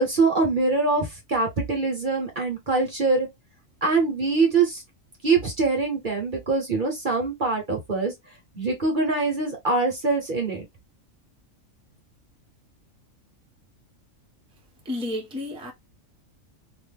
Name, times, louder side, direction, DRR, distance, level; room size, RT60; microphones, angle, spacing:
voice 1, 0.0-3.3 3.8-4.8 5.2-8.1 8.5-10.6, right 3 dB, 40° right, 1.1 m, -23 dB
voice 2, 14.8-15.7, left 1 dB, 5° right, 0.8 m, -31 dB
3.1 x 2.4 x 3.5 m
omnidirectional pair, 1.4 m